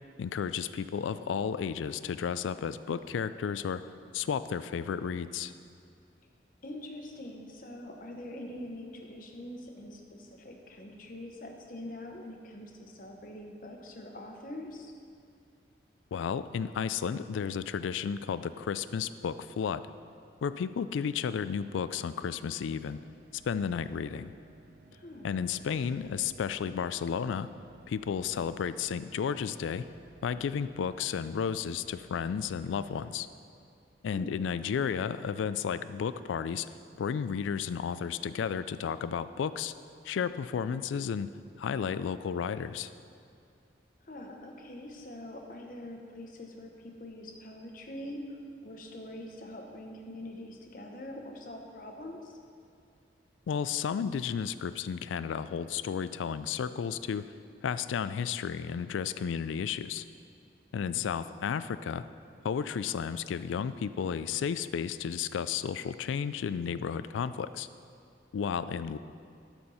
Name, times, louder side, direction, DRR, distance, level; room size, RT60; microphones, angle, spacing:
voice 1, 0.2-3.8 4.1-5.5 16.1-19.8 20.4-23.0 23.3-24.3 25.2-27.5 27.9-29.8 30.2-33.3 34.0-36.7 37.0-39.7 40.0-41.3 41.6-42.9 53.5-57.2 57.6-60.0 60.7-62.1 62.4-67.7 68.3-69.0, left 7 dB, 90° left, 13 dB, 0.3 m, -33 dB
voice 2, 6.6-14.9 24.9-25.3 34.1-34.4 44.0-52.4 61.0-61.2, left 1 dB, 45° left, 2 dB, 0.9 m, -44 dB
sound 1, 22.1-33.9, right 4 dB, 55° right, 0.5 m, -59 dB
12.5 x 4.4 x 5.5 m, 2.4 s
head